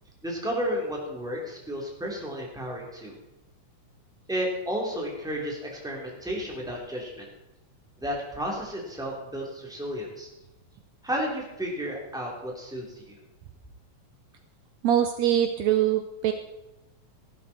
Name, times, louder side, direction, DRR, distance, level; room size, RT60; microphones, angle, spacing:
voice 1, 0.2-3.1 4.3-7.3 8.0-10.3 11.0-13.2, equal, ahead, -2 dB, 2.8 m, -32 dB
voice 2, 14.8-16.3, right 10 dB, 75° right, 8 dB, 1.8 m, -23 dB
15.0 x 12.0 x 4.3 m, 0.94 s
omnidirectional pair, 3.4 m